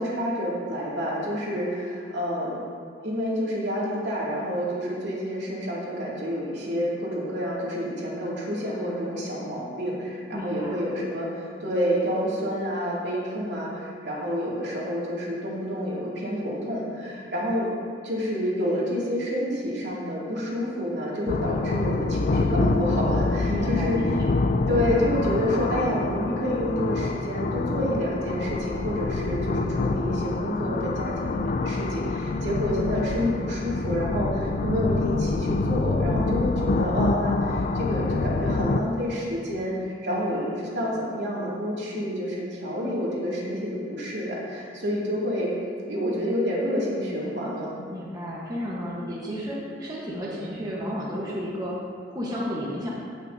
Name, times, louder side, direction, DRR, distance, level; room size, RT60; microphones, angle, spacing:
voice 1, 0.0-2.6 3.0-11.3 11.6-17.7 18.0-24.0 24.7-45.5 45.9-47.8, equal, 70° right, -6 dB, 2.4 m, -28 dB
voice 2, 10.3-10.9 23.5-24.3 40.1-40.6 47.9-51.8 52.1-52.9, equal, 20° right, -5 dB, 1.1 m, -32 dB
sound 1, 21.3-38.8, left 3 dB, 45° left, 0.3 m, -26 dB
16.5 x 6.1 x 2.7 m, 2.2 s
head